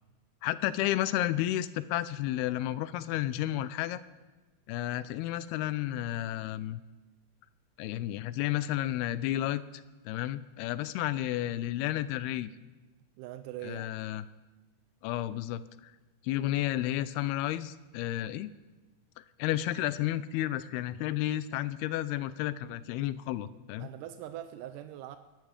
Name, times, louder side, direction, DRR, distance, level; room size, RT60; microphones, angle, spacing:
voice 1, 0.4-4.0 4.7-6.8 7.8-12.5 13.6-14.2 15.0-15.9 16.2-18.5 19.2-23.9, left 14 dB, 90° left, 16 dB, 2.6 m, -32 dB
voice 2, 13.2-14.0 23.8-25.2, right 12 dB, 85° right, 10 dB, 1.9 m, -42 dB
22.5 x 11.5 x 5.1 m, 1.2 s
omnidirectional pair, 4.4 m